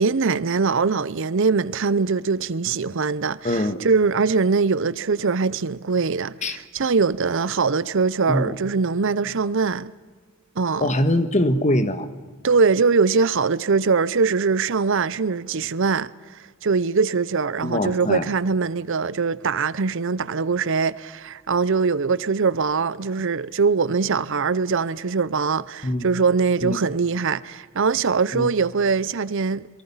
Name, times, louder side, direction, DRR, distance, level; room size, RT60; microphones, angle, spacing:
voice 1, 0.0-9.9 10.6-10.9 12.4-29.7, right 4 dB, 60° right, 0.6 m, -22 dB
voice 2, 3.4-3.8 6.4-6.6 8.3-8.5 10.8-12.0 17.6-18.2 25.8-26.1 26.6-26.8 28.3-28.5, left 1 dB, 35° left, 1.5 m, -22 dB
27.5 x 23.0 x 5.7 m
head